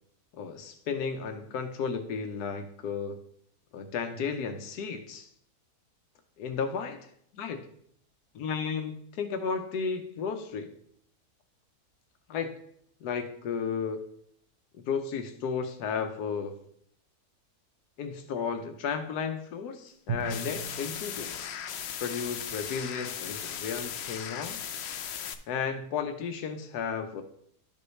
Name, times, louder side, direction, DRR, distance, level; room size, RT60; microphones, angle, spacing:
voice 1, 0.3-3.2 3.7-5.3 6.4-7.0 7.3-7.6 8.3-10.7 12.3-12.5 13.0-14.0 14.8-16.6 18.0-21.4 22.0-24.6 25.5-27.2, left 6 dB, 90° left, 7 dB, 1.3 m, -33 dB
Drum, 20.1-22.5, right 5 dB, 80° right, 1.5 m, -40 dB
sound 1, 20.2-25.3, left 8 dB, 65° left, 0.7 m, -37 dB
11.5 x 5.4 x 3.2 m, 0.68 s
omnidirectional pair, 1.6 m